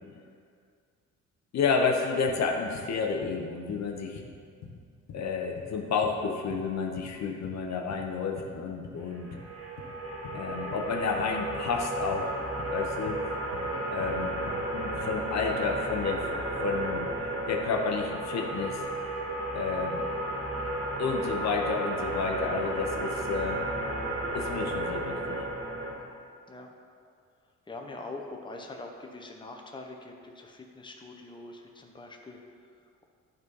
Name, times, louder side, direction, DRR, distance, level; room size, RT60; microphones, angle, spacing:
voice 1, 1.5-4.2 5.1-9.3 10.3-12.3 12.7-13.2 13.9-14.4 14.7-16.3 16.6-18.8 19.5-20.0 21.0-23.6 24.3-25.4, left 5 dB, 65° left, 2 dB, 0.9 m, -30 dB
sound 1, 2.3-8.6 8.8-15.2, left 4 dB, 85° left, 1.4 m, -46 dB
sound 2, 9.1-25.9, right 1 dB, 50° right, 1.8 m, -33 dB
voice 2, 25.9-26.2 26.5-26.7 27.7-32.4, left 2 dB, 15° left, 2 dB, 1.0 m, -44 dB
11.0 x 3.9 x 5.5 m, 2.2 s
cardioid pair, 90°, 30 cm